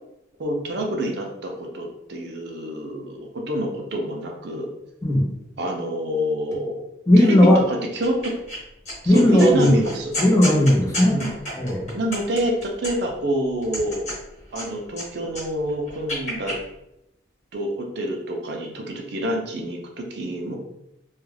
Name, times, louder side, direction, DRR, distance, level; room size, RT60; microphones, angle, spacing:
voice 1, 0.4-4.7 5.6-6.8 7.2-7.4 7.7-8.3 9.0-10.1 11.0-11.4 11.9-14.1 14.5-16.5 17.5-20.5, right 1 dB, 60° right, 1 dB, 0.4 m, -27 dB
voice 2, 5.0-5.3 7.1-7.6 9.0-9.8 10.2-11.2 11.6-11.9, left 1 dB, 15° left, -3 dB, 0.5 m, -16 dB
sound 1, 8.0-8.6 8.9-13.2 13.6-15.0 15.3-16.6, equal, 35° left, 1.1 m, -32 dB
2.3 x 2.2 x 3.2 m, 0.84 s
head